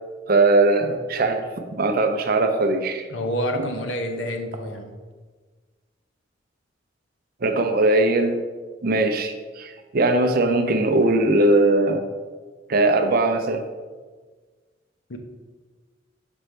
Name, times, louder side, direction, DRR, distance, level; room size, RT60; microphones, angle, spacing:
voice 1, 0.3-1.5 1.8-3.1 7.4-8.4 8.8-12.1 12.7-13.6, right 2 dB, 50° right, 6 dB, 0.6 m, -20 dB
voice 2, 3.1-4.9 15.1-15.2, equal, 80° left, 5 dB, 0.8 m, -28 dB
6.1 x 5.3 x 3.3 m, 1.4 s
head